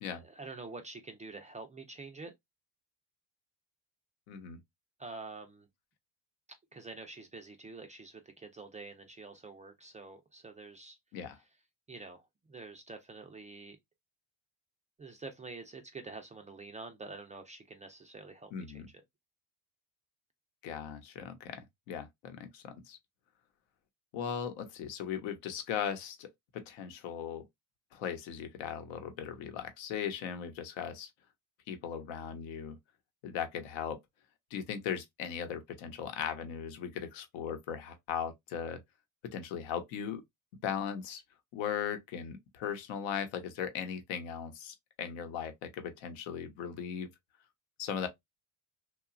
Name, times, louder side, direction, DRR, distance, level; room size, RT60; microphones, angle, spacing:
voice 1, 0.1-2.3 5.0-5.7 6.7-11.0 11.9-13.8 15.0-18.8, right 3 dB, 20° right, 0.3 m, -47 dB
voice 2, 4.3-4.6 11.1-11.4 18.5-18.9 20.6-23.0 24.1-26.3 26.5-27.4 27.9-31.1 31.7-32.8 33.2-34.0 34.5-38.8 39.2-40.2 40.6-41.2 41.5-47.1 47.8-48.1, left 8 dB, 75° left, 0.9 m, -38 dB
2.9 x 2.3 x 2.4 m
supercardioid pair, 90°, 47 cm